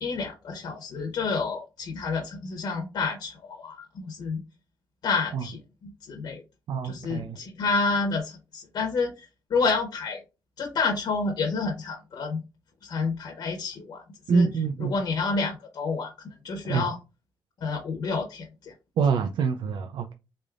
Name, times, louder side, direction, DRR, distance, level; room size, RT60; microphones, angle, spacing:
voice 1, 0.0-3.8 4.1-4.4 5.0-6.4 6.8-10.2 10.6-12.4 12.8-16.1 16.4-17.0 17.6-18.7, left 4 dB, 60° left, 2 dB, 0.8 m, -29 dB
voice 2, 6.7-7.4 14.3-14.9 16.6-16.8 19.0-20.1, right 5 dB, 75° right, 7 dB, 0.4 m, -25 dB
3.8 x 3.4 x 2.4 m, 0.28 s
wide cardioid pair, 165°, 8 cm